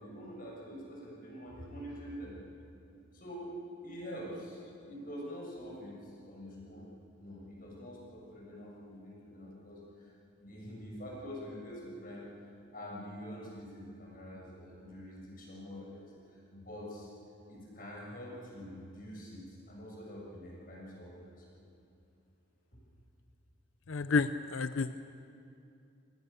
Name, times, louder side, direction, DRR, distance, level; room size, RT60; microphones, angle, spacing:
voice 1, 0.0-2.4 3.1-3.5 3.8-6.9 7.2-10.1 10.4-17.1 17.5-21.6, equal, 45° left, -3 dB, 7.1 m, -46 dB
voice 2, 23.9-25.0, left 4 dB, 75° left, 11 dB, 0.6 m, -30 dB
29.0 x 20.0 x 6.9 m, 2.5 s
head